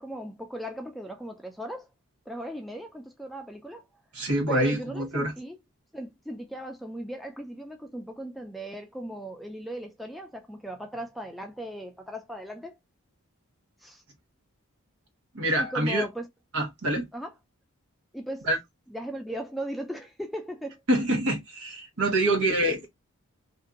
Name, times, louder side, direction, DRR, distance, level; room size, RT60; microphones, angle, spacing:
voice 1, 0.0-1.9 2.3-3.8 4.5-5.6 5.9-12.7 13.8-14.0 15.6-16.3 17.1-17.3 18.1-18.5 18.9-20.8, right 1 dB, ahead, 0.3 m, -37 dB
voice 2, 4.1-5.3 15.3-16.0 16.5-17.1 18.5-18.6 20.9-22.9, right 1 dB, 85° right, 1.1 m, -26 dB
2.8 x 2.5 x 2.3 m
head